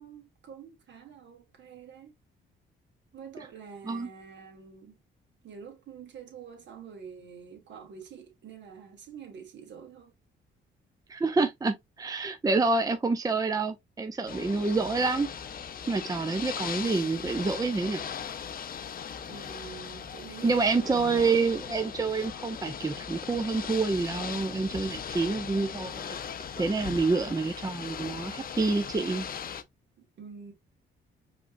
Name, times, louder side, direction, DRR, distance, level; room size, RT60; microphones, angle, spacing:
voice 1, 0.0-2.1 3.1-5.0 5.4-10.1 19.3-21.3 30.0-30.5, right 6 dB, 65° right, 2.1 m, -46 dB
voice 2, 11.1-15.3 15.9-18.0 20.4-26.2 26.6-29.3, right 3 dB, 20° right, 0.7 m, -27 dB
Ocean / Boat Water vehicle, 14.3-29.6, left 7 dB, 45° left, 0.7 m, -39 dB
5.0 x 3.3 x 2.6 m
cardioid pair, 90°, 20 cm